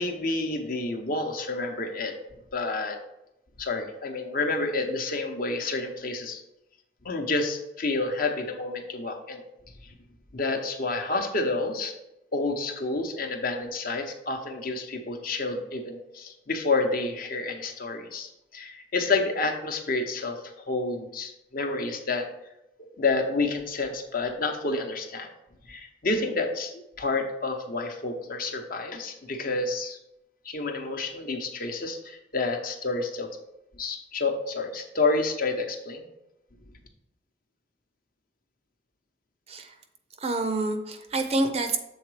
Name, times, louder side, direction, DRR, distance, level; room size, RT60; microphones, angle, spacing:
voice 1, 0.0-2.1 2.5-3.0 3.6-6.4 7.0-9.4 9.8-9.9 10.3-11.9 12.3-22.3 22.8-25.3 25.7-30.0 30.4-33.3 33.8-36.0, left 3 dB, 50° left, 4 dB, 0.8 m, -29 dB
voice 2, 40.2-41.8, right 2 dB, 35° right, 7 dB, 0.5 m, -27 dB
7.1 x 3.9 x 4.8 m, 0.88 s
head